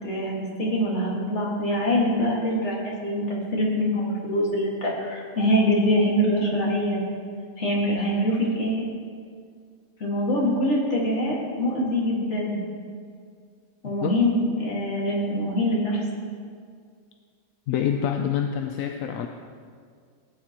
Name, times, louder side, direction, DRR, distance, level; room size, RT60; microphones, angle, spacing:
voice 1, 0.0-7.0 7.6-8.8 10.0-12.6 13.8-16.0, equal, 55° left, -4 dB, 2.3 m, -24 dB
voice 2, 17.7-19.3, left 9 dB, 85° left, 5 dB, 1.0 m, -26 dB
17.0 x 8.9 x 3.0 m, 2.1 s
omnidirectional pair, 1.4 m